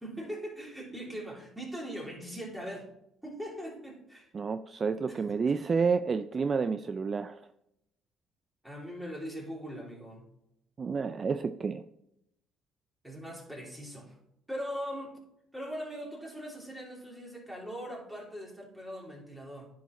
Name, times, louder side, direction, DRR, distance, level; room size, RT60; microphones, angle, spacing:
voice 1, 0.0-2.9 3.2-4.3 5.1-5.2 8.6-10.3 13.0-14.2 14.5-15.1 15.5-19.7, equal, 5° right, -2 dB, 3.2 m, -40 dB
voice 2, 4.3-7.4 10.8-11.8, right 5 dB, 40° right, 10 dB, 0.4 m, -30 dB
10.0 x 4.7 x 4.1 m, 0.81 s
supercardioid pair, 70°, 0 cm